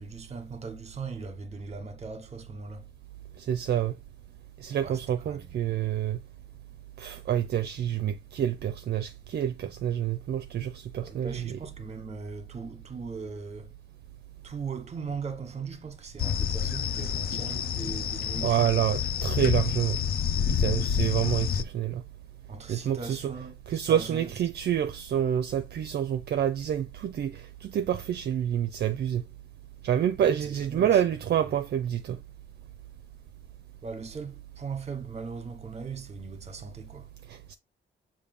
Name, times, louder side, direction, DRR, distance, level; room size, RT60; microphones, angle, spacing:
voice 1, 0.0-2.9 4.8-5.6 11.0-13.7 14.4-18.7 22.5-24.3 30.2-31.0 33.8-37.1, right 5 dB, 35° right, 1.2 m, -39 dB
voice 2, 3.4-4.0 4.6-6.2 7.0-11.6 18.4-20.0 20.5-22.0 22.7-23.3 23.7-29.2 29.8-32.2 37.3-37.5, right 10 dB, 55° right, 0.5 m, -28 dB
sound 1, 16.2-21.6, left 8 dB, 50° left, 0.5 m, -28 dB
6.8 x 2.6 x 5.2 m
wide cardioid pair, 145°, 20 cm